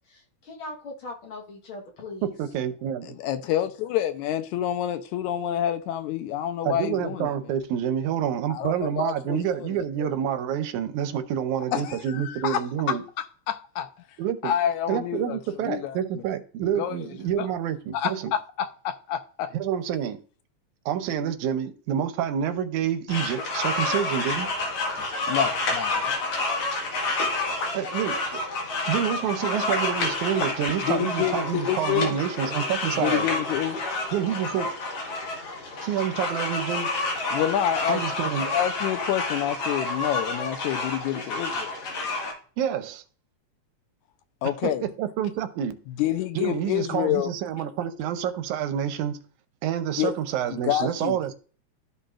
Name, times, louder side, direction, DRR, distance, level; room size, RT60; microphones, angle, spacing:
voice 1, 0.1-2.3, left 2 dB, 50° left, 1.9 m, -40 dB
voice 2, 2.2-3.2 6.6-13.0 14.2-14.5 14.9-18.3 19.5-20.2 20.9-24.5 27.7-28.2 28.9-33.2 34.1-34.7 35.8-36.9 37.9-38.5 42.6-43.0 44.6-45.8 46.4-49.2 49.6-51.3, right 9 dB, 85° right, 2.2 m, -28 dB
voice 3, 3.0-7.3 8.5-9.7 10.0-10.1 11.7-13.0 13.5-13.9 14.4-16.0 16.8-17.0 17.4-17.5 17.9-19.5 25.3-26.1 30.8-32.2 33.0-33.8 37.3-38.0 38.4-41.7 44.4-44.9 45.9-47.3 50.0-50.1 50.5-51.2, left 11 dB, 85° left, 2.1 m, -28 dB
sound 1, 23.1-42.3, left 2 dB, 70° left, 3.2 m, -29 dB
13.0 x 5.4 x 2.4 m
omnidirectional pair, 3.4 m